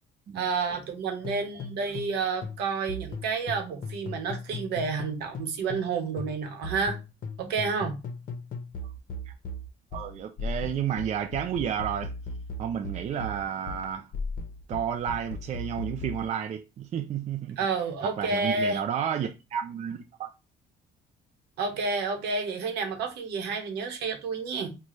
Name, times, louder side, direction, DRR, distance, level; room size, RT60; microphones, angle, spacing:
voice 1, 0.3-7.0 7.4-8.0 17.6-18.8 21.6-24.8, right 4 dB, 80° right, 1.0 m, -30 dB
sound 1, 1.2-2.2 2.4-5.9 6.2-16.2, left 2 dB, 55° left, 0.8 m, -37 dB
voice 2, 9.9-12.1 12.6-14.1 14.7-17.6 18.0-20.3, right 9 dB, 45° right, 0.4 m, -31 dB
4.0 x 2.3 x 3.1 m
cardioid pair, 110°, 17 cm